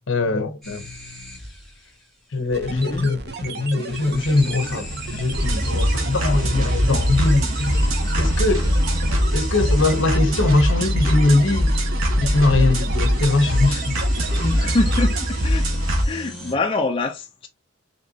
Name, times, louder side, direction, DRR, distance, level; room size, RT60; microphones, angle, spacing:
voice 1, 0.1-0.9 2.3-7.9 8.2-8.7 9.3-11.7 12.2-14.0, left 2 dB, 60° left, 0.8 m, -21 dB
sound 1, 0.6-1.9 3.8-10.5 12.9-16.5, equal, ahead, 1.9 m, -33 dB
sound 2, 2.5-15.7, right 4 dB, 50° right, 0.6 m, -34 dB
voice 2, 2.7-3.1 14.4-15.7 16.0-17.5, left 2 dB, 25° left, 0.4 m, -25 dB
sound 3, 5.3-16.0, equal, 75° right, 1.2 m, -22 dB
5.7 x 2.9 x 2.7 m
head